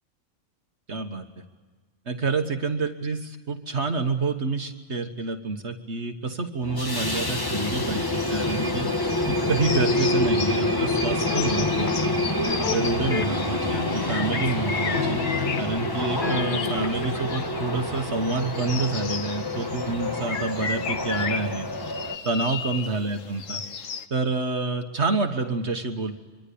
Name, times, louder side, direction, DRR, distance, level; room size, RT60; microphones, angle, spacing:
voice 1, 0.9-1.3 2.1-8.9 9.3-12.2 12.6-15.2 15.6-21.7 22.3-23.6 24.1-26.1, right 3 dB, 60° right, 5 dB, 1.7 m, -28 dB
sound 1, 6.6-22.2, left 1 dB, 15° left, 1.4 m, -27 dB
sound 2, 7.6-24.1, left 6 dB, 80° left, 1.6 m, -35 dB
sound 3, 11.3-12.0 12.5-12.8 13.1-14.7 14.9-15.9 16.2-17.2, left 5 dB, 45° left, 1.0 m, -31 dB
25.5 x 24.5 x 8.5 m, 1.4 s
omnidirectional pair, 1.3 m